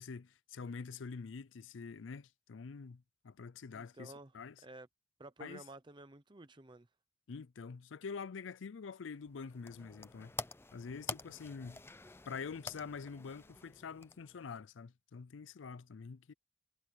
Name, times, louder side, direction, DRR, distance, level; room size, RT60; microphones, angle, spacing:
voice 1, 0.0-4.6 5.4-5.6 7.3-10.3 10.7-11.8 12.3-16.3, left 5 dB, 90° left, 0.5 m, -46 dB
voice 2, 3.7-4.3 4.6-4.9 5.2-6.9, right 2 dB, 25° right, 0.7 m, -52 dB
sound 1, 9.2-14.6, left 3 dB, 15° left, 0.5 m, -48 dB
head